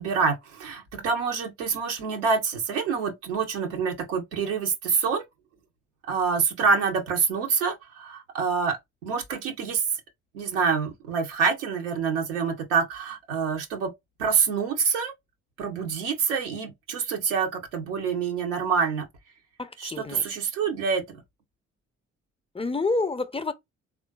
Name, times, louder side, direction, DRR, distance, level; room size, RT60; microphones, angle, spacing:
voice 1, 0.0-5.2 6.1-9.8 10.3-13.9 14.2-15.1 15.6-19.1 19.8-21.2, right 5 dB, 90° right, 0.7 m, -26 dB
voice 2, 19.6-20.3 22.5-23.5, left 3 dB, 15° left, 0.5 m, -28 dB
3.6 x 2.4 x 2.2 m
hypercardioid pair, 40°, 35 cm